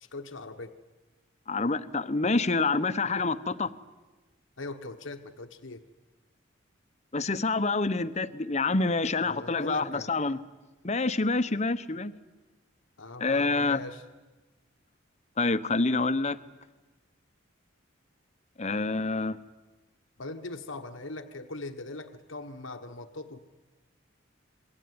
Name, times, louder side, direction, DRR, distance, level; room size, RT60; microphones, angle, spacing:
voice 1, 0.0-0.8 4.6-5.8 9.2-10.1 13.0-14.0 20.2-23.4, left 2 dB, 75° left, 6 dB, 1.2 m, -41 dB
voice 2, 1.5-3.7 7.1-10.4 10.8-12.1 13.2-13.8 15.4-16.4 18.6-19.4, left 3 dB, 35° left, 13 dB, 0.9 m, -27 dB
27.5 x 22.0 x 9.6 m, 1.2 s
head